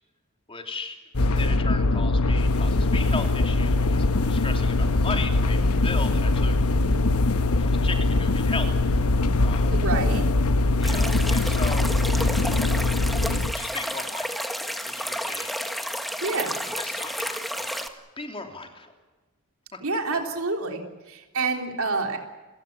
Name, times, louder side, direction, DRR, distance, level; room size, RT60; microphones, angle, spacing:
voice 1, 0.5-6.5 7.5-9.8 10.8-12.2 13.2-14.5 14.8-15.5 16.7-18.9 19.7-19.8, left 3 dB, 25° left, 4 dB, 3.2 m, -37 dB
sound 1, 1.1-13.5, left 2 dB, 75° left, 1.2 m, -22 dB
voice 2, 9.7-10.2 16.2-16.6 19.8-20.8 21.1-22.2, right 3 dB, 65° right, 3 dB, 3.4 m, -27 dB
sound 2, 10.8-17.9, equal, ahead, 1.7 m, -31 dB
29.5 x 16.0 x 8.6 m, 1.2 s
head